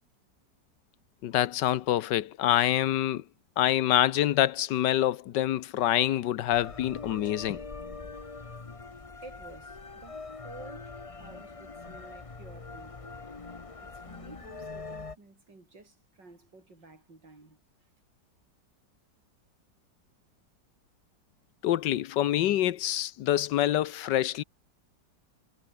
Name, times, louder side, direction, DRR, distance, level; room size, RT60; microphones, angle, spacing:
voice 1, 1.2-3.2 3.6-7.6 21.6-24.4, left 12 dB, 75° left, 1.4 m, -26 dB
sound 1, 6.5-15.2, left 3 dB, 25° left, 1.0 m, -43 dB
voice 2, 8.1-8.8 9.2-13.3 13.8-17.9, right 3 dB, 80° right, 6.2 m, -52 dB
omnidirectional pair, 1.9 m